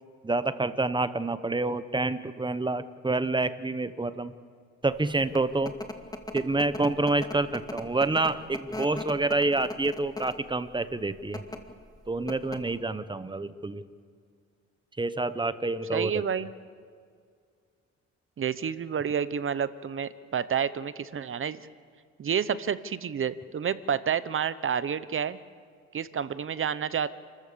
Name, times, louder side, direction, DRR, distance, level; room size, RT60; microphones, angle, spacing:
voice 1, 0.2-4.3 4.8-5.7 6.3-11.4 12.1-13.8 15.0-16.2, right 2 dB, 15° right, 13 dB, 1.0 m, -28 dB
sound 1, 5.1-10.5 11.2-11.6 12.0-12.1 12.3-12.8, left 2 dB, 10° left, 1.9 m, -38 dB
voice 2, 15.9-16.5 18.4-21.7 22.2-25.4 25.9-27.1, right 7 dB, 45° right, 15 dB, 0.9 m, -29 dB
29.0 x 14.5 x 6.9 m, 2.1 s
cardioid pair, 90°, 30 cm